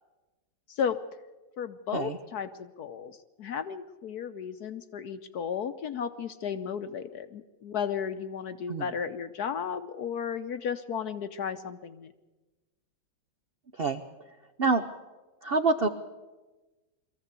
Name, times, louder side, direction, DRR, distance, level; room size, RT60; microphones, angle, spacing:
voice 1, 0.7-1.0 1.6-12.1, left 7 dB, 60° left, 10 dB, 1.1 m, -34 dB
voice 2, 15.4-15.9, right 3 dB, 85° right, 7 dB, 0.5 m, -26 dB
23.0 x 15.0 x 8.2 m, 1.2 s
omnidirectional pair, 2.3 m